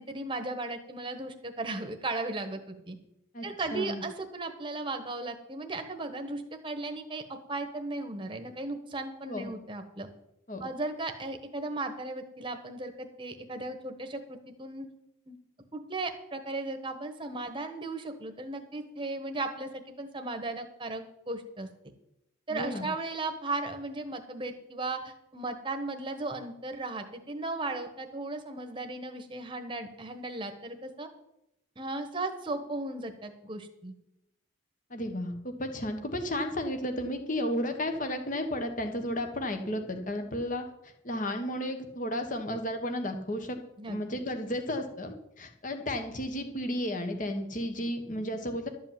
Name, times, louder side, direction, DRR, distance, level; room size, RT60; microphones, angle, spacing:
voice 1, 0.0-3.0 3.4-10.1 10.6-14.9 15.3-15.4 15.7-21.7 22.5-31.1 31.8-33.9 43.8-44.0, right 2 dB, 25° right, 6 dB, 1.2 m, -36 dB
voice 2, 3.7-4.0 9.3-9.5 10.5-10.7 22.5-22.9 34.9-40.6 41.0-43.6 43.9-48.7, left 1 dB, 40° left, 5 dB, 1.4 m, -33 dB
12.0 x 5.5 x 9.0 m, 0.83 s
head